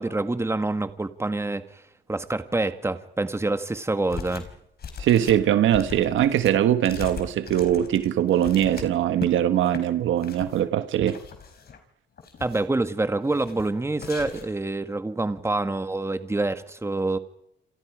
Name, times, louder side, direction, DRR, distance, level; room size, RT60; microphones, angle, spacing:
voice 1, 0.0-1.8 2.1-4.5 12.4-17.2, right 2 dB, 15° right, 1.8 m, -26 dB
sound 1, 4.1-4.5 4.8-9.3 9.7-9.8 10.2-10.6 11.1-11.8 12.2-12.8 13.3-13.7 14.0-14.6, left 6 dB, 50° left, 4.5 m, -39 dB
voice 2, 5.0-11.2, right 11 dB, 75° right, 1.5 m, -22 dB
28.0 x 27.5 x 5.0 m
cardioid pair, 90°, 20 cm